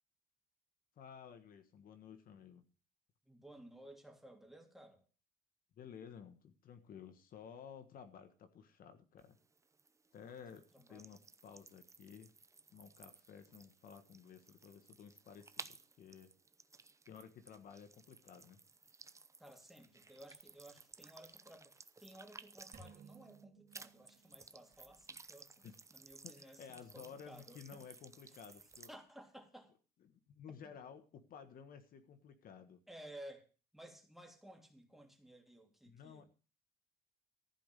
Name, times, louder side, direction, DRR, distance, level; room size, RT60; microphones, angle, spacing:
voice 1, 1.0-2.6 5.8-9.4 10.1-12.3 12.7-16.3 17.1-18.6 25.6-25.7 26.2-28.9 30.0-32.8 35.8-36.3, left 7 dB, 60° left, 9 dB, 1.6 m, -54 dB
voice 2, 3.2-5.0 10.2-10.4 10.7-11.2 19.4-25.5 25.9-27.8 28.9-29.7 32.9-36.3, right 1 dB, ahead, 3 dB, 3.0 m, -56 dB
sound 1, 9.2-23.4 23.7-28.9, right 4 dB, 15° right, 0.7 m, -58 dB
sound 2, 22.7-24.8, right 4 dB, 50° right, 3.9 m, -59 dB
15.0 x 5.0 x 9.0 m, 0.36 s
cardioid pair, 110°, 17 cm